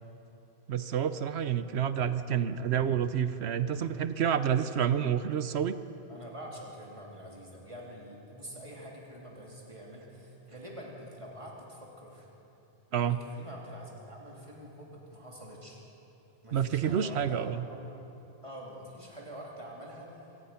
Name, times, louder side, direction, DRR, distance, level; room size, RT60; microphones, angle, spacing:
voice 1, 0.7-5.8 12.9-13.2 16.5-17.7, right 8 dB, 70° right, 12 dB, 1.0 m, -29 dB
voice 2, 6.1-12.3 12.9-15.8 16.4-17.9 18.4-20.2, equal, 25° right, -2 dB, 3.3 m, -46 dB
25.5 x 18.0 x 5.8 m, 2.9 s
omnidirectional pair, 1.2 m